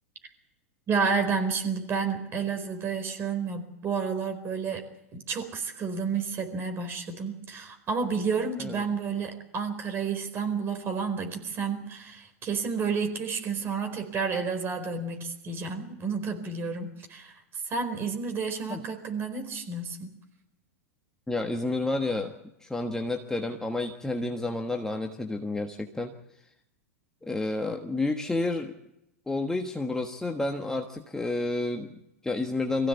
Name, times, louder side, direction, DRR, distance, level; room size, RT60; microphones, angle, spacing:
voice 1, 0.9-4.8 5.1-20.1, right 5 dB, 30° right, 6 dB, 4.5 m, -30 dB
voice 2, 21.3-22.3 22.6-26.1 27.2-28.7 29.3-32.9, left 2 dB, 5° left, 3 dB, 1.4 m, -30 dB
23.5 x 16.0 x 8.3 m, 0.87 s
hypercardioid pair, 105°, 8 cm